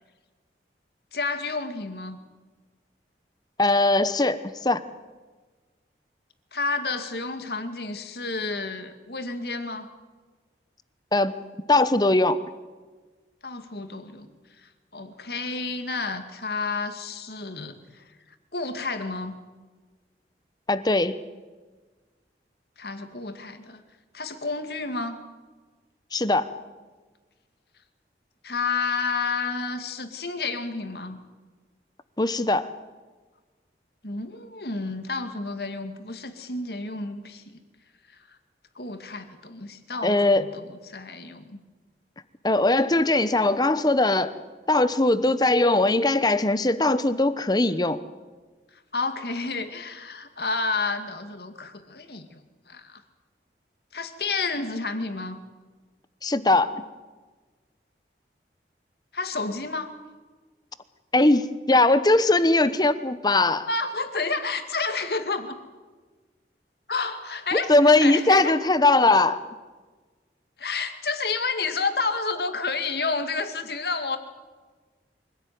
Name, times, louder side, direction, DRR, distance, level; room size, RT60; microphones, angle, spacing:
voice 1, 1.1-2.2 6.5-9.9 13.4-14.3 14.6-18.0 18.5-19.4 22.8-23.8 24.1-25.2 28.4-31.2 34.0-37.4 38.3-38.4 38.8-41.6 48.9-52.4 52.7-53.0 53.9-55.4 59.1-59.9 63.7-65.6 66.9-67.7 68.0-68.6 70.6-74.2, left 4 dB, 65° left, 8 dB, 2.3 m, -30 dB
voice 2, 3.6-4.8 11.1-11.4 11.7-12.4 20.7-21.2 26.1-26.5 32.2-32.7 40.0-40.4 42.4-44.3 44.7-48.0 56.2-56.7 61.1-63.7 67.7-69.4, left 2 dB, 25° left, 13 dB, 1.0 m, -20 dB
24.5 x 16.5 x 9.5 m, 1.3 s
head